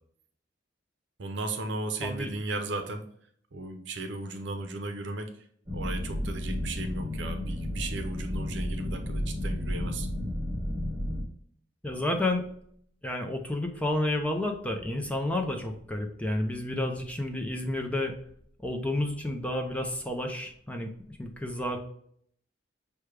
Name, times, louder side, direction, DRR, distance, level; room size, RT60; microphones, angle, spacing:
voice 1, 1.2-3.0 3.5-5.3 5.7-10.1, right 2 dB, 70° right, 6 dB, 0.7 m, -35 dB
voice 2, 2.0-2.3 11.8-12.4 13.0-18.1 18.6-21.8, left 1 dB, 5° left, 3 dB, 0.5 m, -30 dB
sound 1, 5.7-11.2, left 1 dB, 20° right, 0.8 m, -32 dB
6.1 x 2.2 x 3.3 m, 0.64 s
head